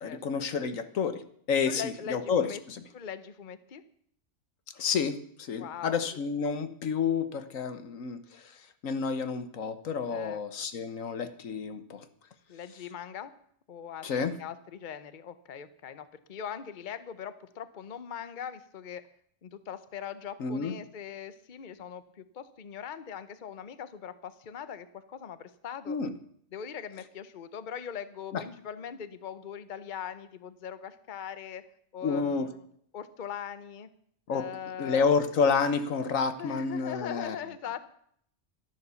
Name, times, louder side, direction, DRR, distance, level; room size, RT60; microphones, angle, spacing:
voice 1, 0.0-2.8 4.8-12.0 14.0-14.4 20.4-20.7 25.9-26.1 28.3-28.4 32.0-32.5 34.3-34.5 34.8-37.4, left 5 dB, 90° left, 10 dB, 1.5 m, -30 dB
voice 2, 1.6-2.6 2.9-3.8 5.6-6.2 10.1-10.9 12.5-13.3 13.7-19.0 19.4-26.0 26.5-31.6 31.9-32.6 32.9-33.9 34.3-35.1 36.4-37.8, left 8 dB, 45° left, 13 dB, 0.9 m, -41 dB
13.0 x 11.0 x 7.0 m, 0.66 s
omnidirectional pair, 1.3 m